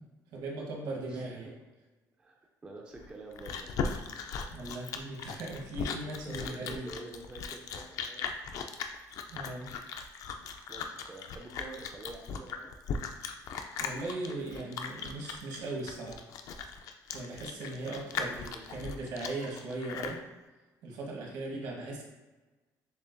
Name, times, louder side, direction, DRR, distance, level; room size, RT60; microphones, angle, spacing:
voice 1, 0.0-1.5 4.5-6.9 9.3-9.7 13.8-16.3 17.1-20.2 20.8-22.0, right 2 dB, 75° right, -1 dB, 1.2 m, -39 dB
voice 2, 0.9-1.2 2.2-3.7 6.1-8.3 8.7-8.8 10.7-12.7 18.1-19.0, right 2 dB, 15° right, 0 dB, 0.4 m, -48 dB
Chewing mastication, 3.0-20.2, left 6 dB, 60° left, 0.3 m, -38 dB
7.0 x 2.5 x 2.2 m, 1.2 s
cardioid pair, 165°, 7 cm